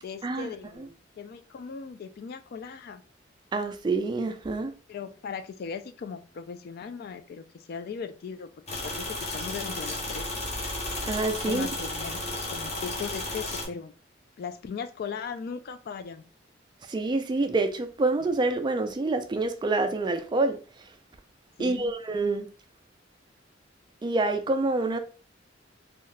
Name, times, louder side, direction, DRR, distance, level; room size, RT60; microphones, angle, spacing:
voice 1, 0.0-3.0 4.9-8.5 8.8-10.3 11.4-12.2 12.5-13.9 14.4-16.3 21.6-21.9, left 6 dB, 55° left, 0.3 m, -38 dB
voice 2, 3.5-4.7 11.0-11.7 16.9-20.9 21.6-22.5 24.0-25.0, right 2 dB, 25° right, 0.3 m, -27 dB
sound 1, 8.7-13.7, left 2 dB, 35° left, 0.8 m, -33 dB
2.7 x 2.4 x 3.2 m
head